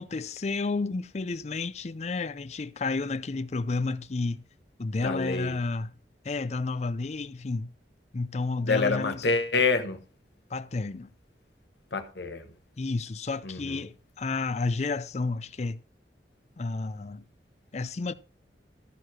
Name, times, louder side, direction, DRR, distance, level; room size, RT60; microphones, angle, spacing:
voice 1, 0.0-4.4 4.8-6.0 6.2-7.7 8.1-9.2 10.5-11.1 12.8-15.8 16.6-17.2 17.7-18.1, left 3 dB, 40° left, 0.5 m, -31 dB
voice 2, 5.0-5.6 8.6-10.0 11.9-12.5 13.4-13.8, left 4 dB, 80° left, 1.2 m, -27 dB
13.5 x 4.7 x 6.1 m
head